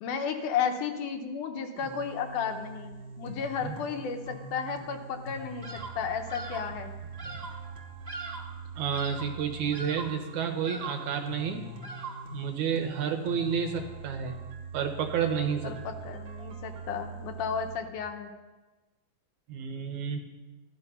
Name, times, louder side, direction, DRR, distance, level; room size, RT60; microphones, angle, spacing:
voice 1, 0.0-6.9 15.6-18.3, left 6 dB, 70° left, 5 dB, 2.3 m, -33 dB
sound 1, 1.8-17.8, right 3 dB, 50° right, 1.6 m, -43 dB
Bird vocalization bird call bird song, 5.6-6.0 6.3-6.7 7.2-7.6 8.1-8.6 8.9-9.4 9.7-10.2 10.6-11.1 11.8-12.3, right 4 dB, 15° right, 1.9 m, -41 dB
voice 2, 8.8-11.7 12.3-14.4 14.7-15.7 19.5-20.2, right 7 dB, 70° right, 5 dB, 2.2 m, -30 dB
14.5 x 12.0 x 5.5 m, 1.2 s
omnidirectional pair, 4.0 m